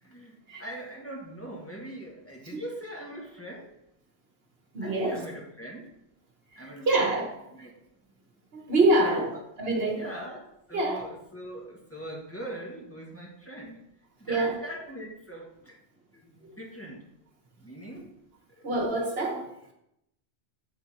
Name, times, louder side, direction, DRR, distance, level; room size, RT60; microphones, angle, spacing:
voice 1, 0.0-3.7 4.8-5.9 6.5-7.0 7.5-7.7 9.0-9.4 9.9-13.8 14.2-15.8 16.1-17.0 17.6-18.1 18.5-18.7, right 1 dB, 10° left, -3 dB, 1.7 m, -41 dB
voice 2, 4.7-5.2 6.5-7.4 8.5-10.1 10.7-11.1 14.3-14.6 17.9-18.0 18.6-19.5, right 2 dB, 60° right, 2 dB, 1.4 m, -26 dB
8.5 x 4.5 x 5.6 m, 0.81 s
omnidirectional pair, 1.2 m